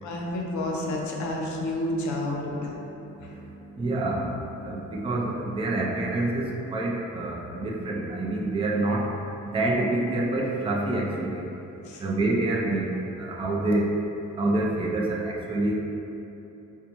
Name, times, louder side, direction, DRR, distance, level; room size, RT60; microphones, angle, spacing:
voice 1, 0.0-2.7 3.2-3.3 11.8-12.0, left 1 dB, 70° left, -1 dB, 0.6 m, -30 dB
voice 2, 3.3-9.1 9.5-11.5 12.0-12.9 13.2-13.9 14.4-15.7, right 2 dB, 20° right, -2 dB, 0.4 m, -27 dB
4.0 x 2.2 x 2.9 m, 3.0 s
cardioid pair, 90°, 30 cm